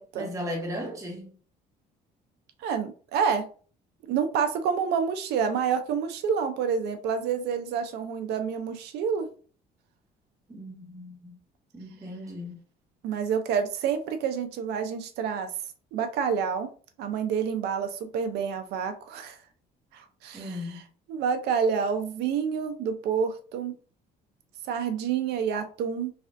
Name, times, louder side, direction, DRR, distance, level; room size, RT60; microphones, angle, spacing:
voice 1, 0.1-1.3 10.5-11.4 11.7-12.6 20.3-20.8, left 1 dB, 20° right, 1.0 m, -36 dB
voice 2, 2.6-3.5 4.1-9.3 13.0-15.5 15.9-16.7 17.0-19.4 19.9-20.8 21.1-23.7 24.7-26.1, right 7 dB, 80° right, 0.5 m, -28 dB
3.2 x 2.4 x 2.5 m
cardioid pair, 110°, 17 cm